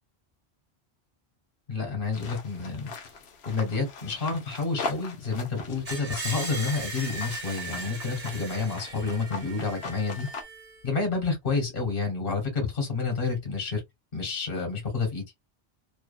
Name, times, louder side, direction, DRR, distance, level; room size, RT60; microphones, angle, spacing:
voice 1, 1.7-2.9 3.5-10.3 10.8-13.8 14.1-15.2, left 4 dB, 55° left, 1.3 m, -29 dB
sound 1, 2.1-10.4, left 4 dB, 75° left, 0.9 m, -41 dB
Screech, 5.9-10.8, right 3 dB, 50° right, 1.1 m, -38 dB
2.7 x 2.3 x 2.3 m
omnidirectional pair, 1.1 m